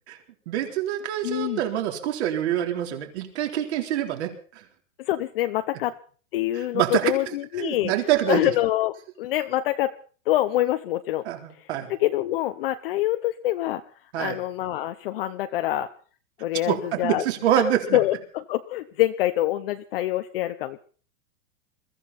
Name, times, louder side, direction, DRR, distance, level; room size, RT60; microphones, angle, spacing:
voice 1, 0.5-4.3 4.6-4.7 6.5-7.1 7.6-8.4 11.3-11.9 14.1-14.4 16.7-18.0, right 11 dB, 50° right, 4 dB, 3.7 m, -26 dB
voice 2, 1.2-1.6 5.0-5.9 6.3-7.9 8.3-9.9 10.3-11.2 12.0-13.8 14.2-15.9 16.4-17.2 17.9-20.8, left 15 dB, 45° left, 8 dB, 0.8 m, -25 dB
22.0 x 15.0 x 4.2 m, 0.41 s
supercardioid pair, 165°, 41 cm